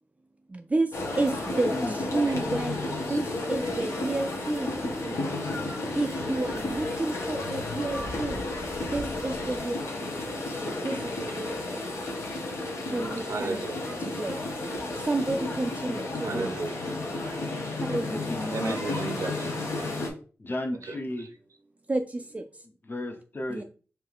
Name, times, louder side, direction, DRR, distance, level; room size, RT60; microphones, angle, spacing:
voice 1, 0.5-0.9 1.2-4.7 5.0-5.5 6.0-8.4 8.9-10.2 10.8-11.0 11.2-11.8 12.9-13.6 14.0-14.4 15.1-16.5 17.9-18.3 21.9-22.4 23.5-23.6, right 2 dB, 30° right, 7 dB, 0.4 m, -30 dB
sound 1, 0.9-20.1, left 2 dB, 80° left, 1.4 m, -32 dB
voice 2, 13.2-14.1 16.2-16.9 18.5-19.8 20.8-21.3, right 3 dB, 80° right, 8 dB, 0.6 m, -35 dB
voice 3, 18.1-18.7 20.4-21.3 22.8-23.6, left 1 dB, 45° left, 3 dB, 1.0 m, -34 dB
4.5 x 3.2 x 3.5 m, 0.37 s
cardioid pair, 60°, 5 cm